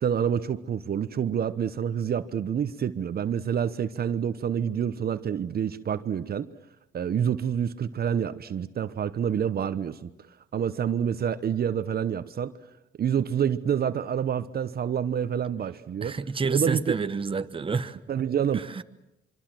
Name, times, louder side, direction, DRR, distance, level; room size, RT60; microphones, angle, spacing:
voice 1, 0.0-6.5 6.9-10.1 10.5-12.5 13.0-16.2 16.5-17.0 18.1-18.7, right 8 dB, 50° right, 1.0 m, -27 dB
voice 2, 16.0-18.0 18.5-18.8, right 4 dB, 25° right, 1.1 m, -29 dB
25.5 x 24.5 x 7.7 m
cardioid pair, 90°, 20 cm